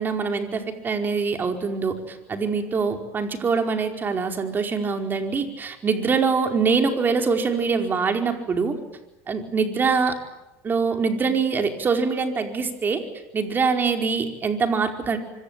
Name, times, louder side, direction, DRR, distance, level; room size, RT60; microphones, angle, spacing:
voice 1, 0.0-8.8 9.3-10.2 10.6-13.0 13.3-15.2, right 5 dB, 25° right, 5 dB, 4.8 m, -24 dB
25.5 x 24.5 x 9.2 m, 0.96 s
supercardioid pair, 115°, 7 cm